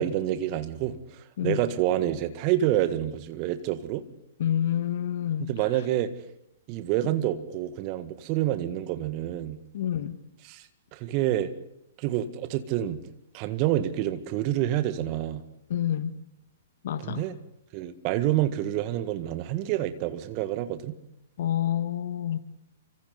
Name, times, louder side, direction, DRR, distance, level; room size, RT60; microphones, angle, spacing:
voice 1, 0.0-4.0 5.5-6.1 6.7-9.6 10.5-11.5 12.0-13.0 13.3-15.4 17.0-17.3 17.7-20.9, right 13 dB, 35° right, 1.8 m, -28 dB
voice 2, 4.4-5.5 9.7-10.2 15.7-16.2 16.8-17.3 21.4-22.4, left 10 dB, 55° left, 1.8 m, -28 dB
29.5 x 25.5 x 4.1 m
figure-of-eight pair, 115°, 0 cm